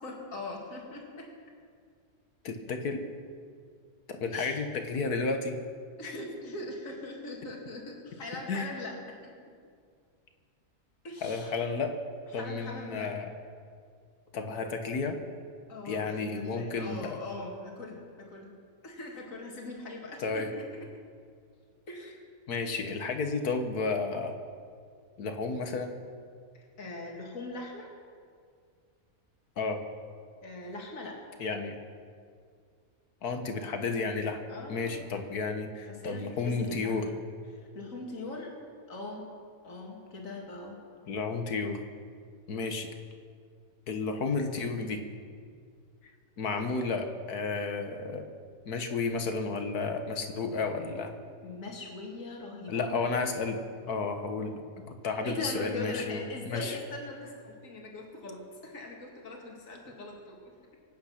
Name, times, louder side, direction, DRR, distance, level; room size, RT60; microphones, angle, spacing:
voice 1, 0.0-1.3 4.3-4.6 6.0-9.3 11.0-11.5 12.3-13.1 15.7-18.5 18.8-20.7 21.9-22.2 26.5-27.9 30.4-31.2 34.5-35.0 35.9-37.1 37.5-38.5 38.9-39.3 39.6-40.8 51.4-52.9 55.1-60.5, left 2 dB, 55° left, 0 dB, 2.6 m, -41 dB
voice 2, 2.4-3.0 4.1-5.6 6.0-6.1 8.5-8.7 11.2-12.0 12.3-13.3 14.3-15.2 15.9-17.2 20.2-20.5 22.5-24.3 25.2-26.0 29.6-29.8 31.4-31.8 33.2-34.4 34.7-37.1 41.1-41.8 42.5-42.9 43.9-45.0 46.4-48.3 48.7-51.1 52.7-53.6 53.9-54.6 55.0-56.8, left 4 dB, 75° left, 6 dB, 1.8 m, -32 dB
24.0 x 9.4 x 5.9 m, 2.1 s
omnidirectional pair, 1.6 m